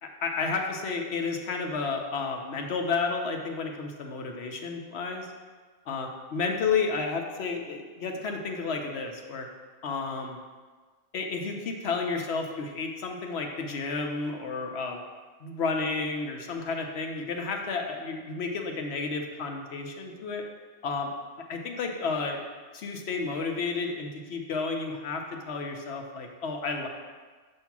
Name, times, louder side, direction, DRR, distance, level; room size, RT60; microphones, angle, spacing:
voice 1, 0.0-5.3 5.9-9.5 9.8-10.4 11.1-15.0 15.4-20.4 20.8-21.1 21.5-22.4 22.7-26.9, left 4 dB, 65° left, 2 dB, 0.9 m, -31 dB
7.0 x 2.8 x 5.8 m, 1.4 s
omnidirectional pair, 1.3 m